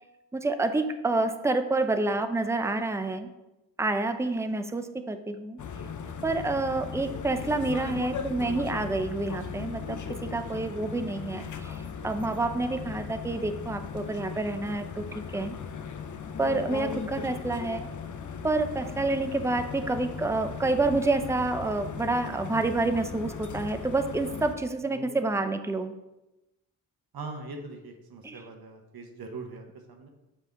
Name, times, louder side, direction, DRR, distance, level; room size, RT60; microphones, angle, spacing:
voice 1, 0.3-3.3 3.8-5.6 6.2-15.5 16.4-17.9 18.4-25.9 28.2-28.4, right 2 dB, 5° right, 8 dB, 0.6 m, -28 dB
sound 1, 5.6-24.6, left 6 dB, 45° left, 0.7 m, -38 dB
voice 2, 24.8-25.2 27.1-30.1, right 3 dB, 60° right, 3 dB, 1.2 m, -41 dB
6.9 x 4.6 x 3.8 m, 0.99 s
supercardioid pair, 40°, 42 cm